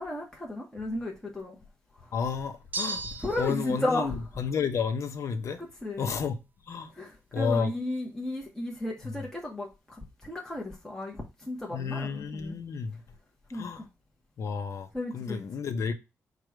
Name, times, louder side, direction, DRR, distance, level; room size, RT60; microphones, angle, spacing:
voice 1, 0.0-1.5 2.0-2.1 3.2-4.1 5.6-6.1 7.0-12.6 13.5-13.9 14.9-15.4, left 1 dB, 10° left, 0.9 m, -34 dB
voice 2, 2.1-3.1 3.4-5.6 6.0-6.4 6.7-6.9 7.3-7.7 9.0-9.1 11.7-13.0 13.5-13.8 14.4-15.9, left 6 dB, 60° left, 0.7 m, -31 dB
sound 1, 2.7-3.7, right 3 dB, 30° right, 0.4 m, -35 dB
4.7 x 2.3 x 4.7 m
cardioid pair, 125°, 6 cm